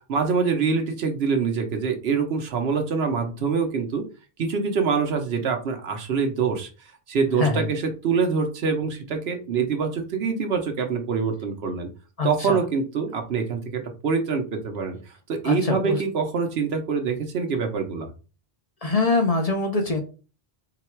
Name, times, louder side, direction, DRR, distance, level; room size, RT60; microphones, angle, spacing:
voice 1, 0.1-4.0 4.4-6.7 7.1-11.9 12.2-15.0 15.3-18.1, right 5 dB, 75° right, 4 dB, 1.0 m, -25 dB
voice 2, 12.2-12.6 15.4-16.0 18.8-20.0, left 3 dB, 40° left, 3 dB, 0.7 m, -23 dB
3.9 x 2.3 x 4.4 m, 0.35 s
omnidirectional pair, 1.1 m